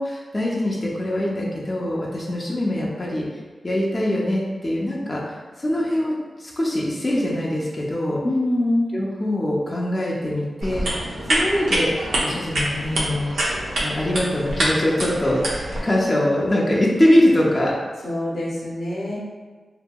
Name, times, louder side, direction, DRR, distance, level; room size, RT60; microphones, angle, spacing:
voice 1, 0.0-3.3 3.6-6.1 6.4-8.2 8.9-10.9 11.3-11.9 12.2-17.7, left 1 dB, 30° left, -5 dB, 0.5 m, -23 dB
voice 2, 8.2-8.9 18.0-19.2, left 1 dB, 80° left, -6 dB, 0.8 m, -24 dB
sound 1, 10.6-15.8, right 1 dB, 85° right, 0.6 m, -25 dB
2.7 x 2.6 x 2.2 m, 1.3 s
cardioid pair, 65°, 0 cm